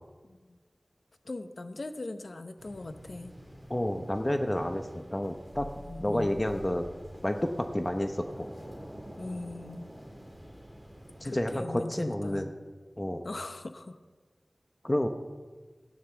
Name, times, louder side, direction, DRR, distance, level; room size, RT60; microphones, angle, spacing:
voice 1, 0.2-0.6 1.2-3.3 5.8-6.3 9.2-9.9 11.2-12.5 13.2-14.0, left 2 dB, 70° left, 9 dB, 0.9 m, -40 dB
sound 1, 2.6-11.6, equal, ahead, 3.1 m, -48 dB
voice 2, 3.7-5.7 6.0-6.9 7.2-8.5 11.2-12.5 13.0-13.3 14.8-15.1, left 1 dB, 25° left, 6 dB, 0.9 m, -30 dB
13.5 x 9.9 x 7.0 m, 1.4 s
wide cardioid pair, 55°, 0 cm